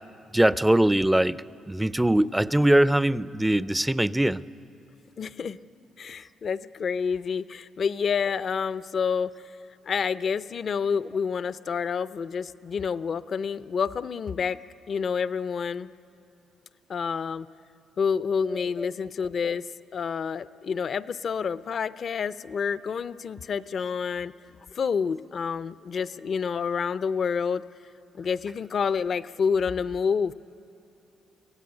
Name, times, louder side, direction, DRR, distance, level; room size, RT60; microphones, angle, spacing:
voice 1, 0.3-4.4 18.5-18.9, right 1 dB, 10° right, 17 dB, 0.4 m, -22 dB
voice 2, 5.2-5.6 6.0-9.3 9.9-14.6 14.9-15.9 16.9-17.5 18.0-19.6 19.9-24.3 24.7-27.6 28.2-30.3, left 6 dB, 50° left, 15 dB, 0.5 m, -28 dB
24.0 x 16.5 x 9.5 m, 2.8 s
cardioid pair, 90°, 0 cm